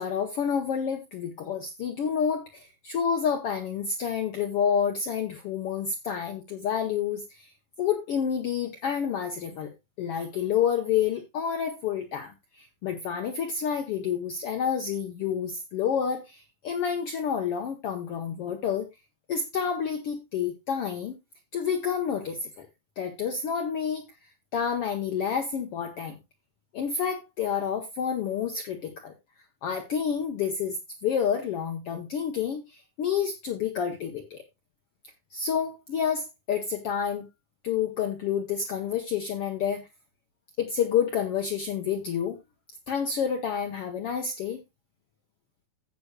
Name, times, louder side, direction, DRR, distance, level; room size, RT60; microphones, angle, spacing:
voice 1, 0.0-7.5 7.8-9.7 10.0-18.9 19.3-21.2 21.5-22.7 23.0-24.1 24.5-26.2 26.7-29.1 29.6-34.4 35.3-37.3 37.6-39.9 40.6-42.4 42.9-44.6, left 7 dB, 70° left, 5 dB, 1.4 m, -29 dB
14.5 x 8.3 x 2.3 m, 0.21 s
omnidirectional pair, 3.8 m